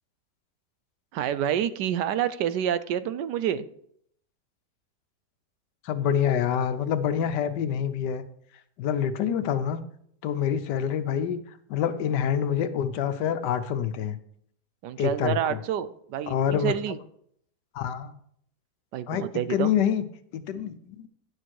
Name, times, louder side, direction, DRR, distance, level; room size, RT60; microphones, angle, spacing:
voice 1, 1.1-3.7 14.8-17.0 18.9-19.7, right 9 dB, 85° right, 13 dB, 1.2 m, -28 dB
voice 2, 5.8-8.2 8.8-9.8 10.2-11.4 11.7-14.2 15.0-15.6 16.3-16.7 17.7-18.1 19.1-19.2 19.5-20.0 20.3-21.1, left 8 dB, 85° left, 12 dB, 1.4 m, -26 dB
10.5 x 6.4 x 4.6 m, 0.68 s
omnidirectional pair, 1.8 m